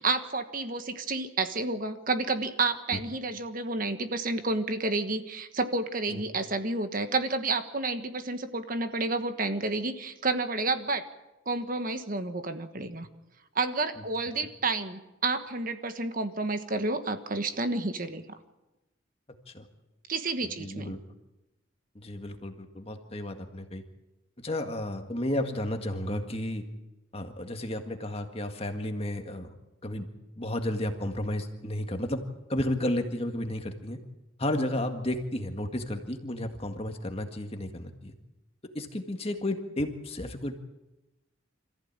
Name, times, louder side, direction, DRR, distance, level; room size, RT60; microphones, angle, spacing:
voice 1, 0.0-11.0 11.5-13.1 13.5-18.2 20.1-20.9, right 3 dB, 45° right, 8 dB, 1.3 m, -30 dB
voice 2, 20.4-21.0 22.0-23.8 24.4-26.7 27.1-29.6 29.8-30.1 30.4-32.2 32.5-34.0 34.4-38.1 38.7-40.6, left 1 dB, 30° left, 5 dB, 1.8 m, -32 dB
26.5 x 15.0 x 8.8 m, 1.0 s
head